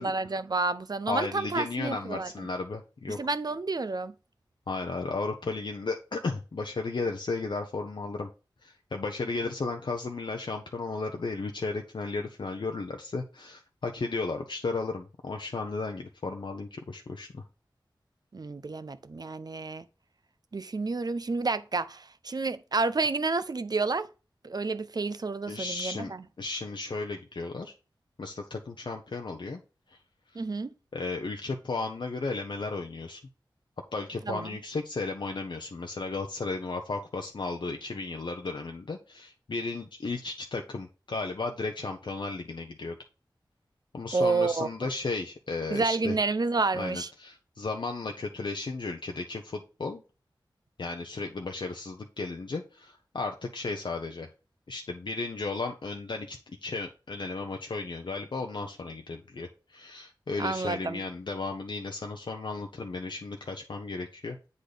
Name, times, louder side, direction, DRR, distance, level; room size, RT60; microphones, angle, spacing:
voice 1, 0.0-2.3 3.2-4.1 18.3-19.9 20.5-24.1 24.4-26.2 30.3-30.7 34.3-34.6 44.1-44.9 45.7-47.1 60.4-61.0, right 3 dB, 55° right, 0.7 m, -30 dB
voice 2, 1.1-3.2 4.7-8.3 8.6-17.4 25.5-26.1 26.4-27.7 28.2-29.6 29.9-30.0 30.9-33.2 33.9-43.0 43.9-46.1 46.7-50.0 50.8-54.3 54.7-64.4, left 3 dB, 70° left, 0.8 m, -34 dB
8.3 x 4.0 x 5.1 m
wide cardioid pair, 65°, 8 cm